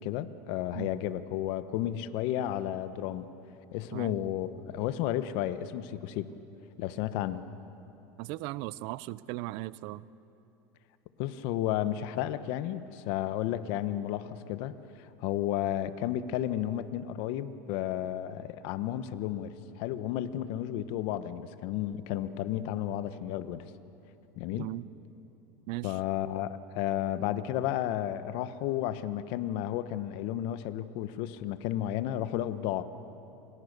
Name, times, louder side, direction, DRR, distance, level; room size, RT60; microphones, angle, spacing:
voice 1, 0.0-3.3 3.7-6.3 6.8-7.5 11.2-14.7 15.2-23.7 24.4-24.7 25.8-32.8, left 12 dB, 65° left, 12 dB, 1.2 m, -32 dB
voice 2, 8.2-10.1 24.6-24.9 25.7-26.0, right 18 dB, 60° right, 18 dB, 0.7 m, -38 dB
29.5 x 26.0 x 6.8 m, 3.0 s
supercardioid pair, 125°, 9 cm